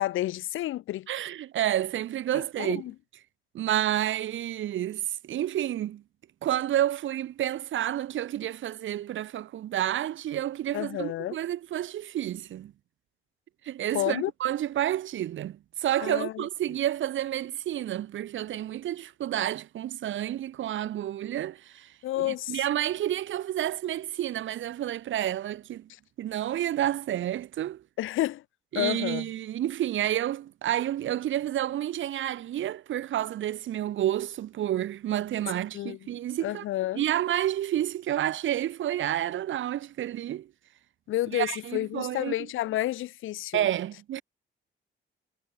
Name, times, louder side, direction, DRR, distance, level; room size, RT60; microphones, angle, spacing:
voice 1, 0.0-1.1 2.6-2.9 10.7-11.4 13.9-14.3 16.0-16.4 22.0-22.6 28.0-28.4 28.7-29.3 35.7-36.0 36.4-37.0 41.1-43.7, left 15 dB, 85° left, 4.0 m, -30 dB
voice 2, 1.1-2.8 3.5-6.0 6.4-12.7 13.6-25.9 26.2-27.8 28.7-36.6 36.9-40.5 41.3-42.3 43.5-44.2, right 12 dB, 75° right, 7.3 m, -30 dB
cardioid pair, 90°, 20 cm